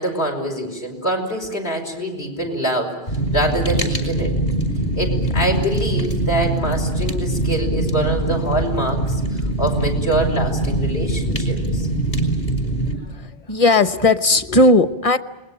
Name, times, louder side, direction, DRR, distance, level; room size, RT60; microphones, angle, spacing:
voice 1, 0.0-4.3 5.0-11.9, right 1 dB, 85° left, 1 dB, 5.6 m, -25 dB
Fire, 3.1-12.9, right 1 dB, 60° left, 5.1 m, -22 dB
voice 2, 13.1-15.2, left 2 dB, 35° left, 11 dB, 1.0 m, -16 dB
28.5 x 21.5 x 9.0 m, 1.0 s
omnidirectional pair, 1.0 m